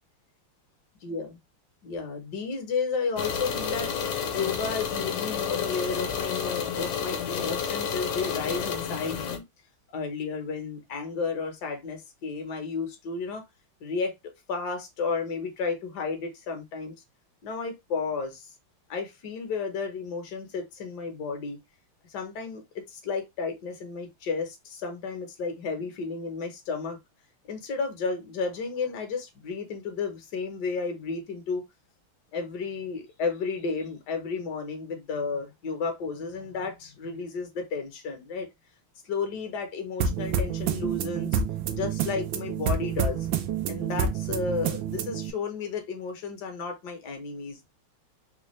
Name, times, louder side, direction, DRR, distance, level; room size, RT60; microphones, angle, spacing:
voice 1, 1.0-1.4 1.8-3.9 4.3-9.4 9.9-13.4 13.8-14.1 14.5-16.9 17.4-18.5 18.9-21.6 22.1-27.0 27.5-31.6 32.3-38.5 39.0-41.4 41.7-43.3 43.7-47.7, left 4 dB, 55° left, 1.4 m, -32 dB
sound 1, 3.2-9.4, left 7 dB, 75° left, 1.5 m, -30 dB
sound 2, 40.0-45.3, right 6 dB, 70° right, 1.3 m, -28 dB
4.1 x 2.4 x 3.0 m
omnidirectional pair, 2.3 m